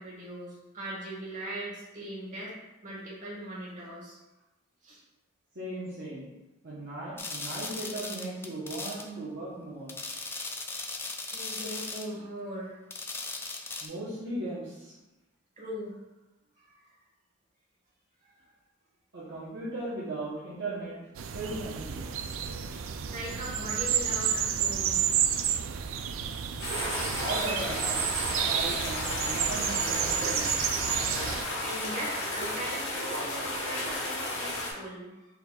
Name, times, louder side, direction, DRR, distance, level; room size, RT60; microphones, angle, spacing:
voice 1, 0.0-2.5 2.8-4.2 4.8-5.0 10.7-10.9 11.3-12.8 15.6-15.9 16.6-16.9 23.1-25.1 31.6-35.3, right 1 dB, 40° right, -5 dB, 1.4 m, -39 dB
voice 2, 5.5-6.3 6.6-10.0 13.8-15.0 19.1-21.1 21.3-22.1 22.7-22.8 27.2-28.0 28.4-30.6, right 2 dB, 60° right, -8 dB, 0.9 m, -37 dB
sound 1, 7.2-9.1 9.9-12.1 12.9-13.9, left 3 dB, 10° left, 0.3 m, -38 dB
sound 2, 21.1-31.4, right 8 dB, 75° right, 0.3 m, -30 dB
sound 3, 26.6-34.7, left 1 dB, 65° left, 1.2 m, -33 dB
4.5 x 3.9 x 2.3 m, 1.0 s
head